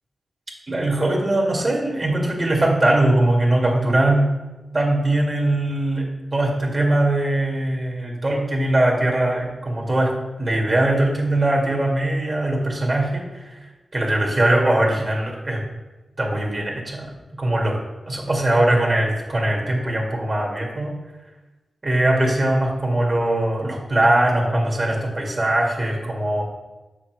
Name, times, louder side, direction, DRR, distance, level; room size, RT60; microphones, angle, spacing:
voice 1, 0.7-4.3 4.7-6.1 6.3-10.1 10.4-13.5 13.9-15.6 16.2-17.8 18.1-21.0 21.8-26.4, right 1 dB, 45° right, -2 dB, 2.0 m, -21 dB
7.1 x 6.1 x 3.1 m, 1.1 s
cardioid pair, 55°, 0 cm